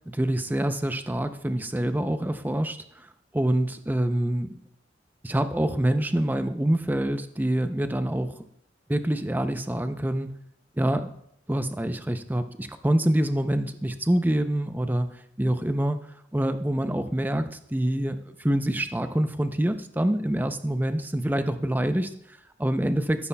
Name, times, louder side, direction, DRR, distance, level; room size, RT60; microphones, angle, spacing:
voice 1, 0.1-3.1 3.3-4.6 5.2-8.4 8.9-10.4 10.8-11.1 11.5-16.0 16.3-23.3, right 1 dB, 10° right, 8 dB, 0.5 m, -26 dB
14.0 x 12.5 x 2.3 m, 0.73 s
head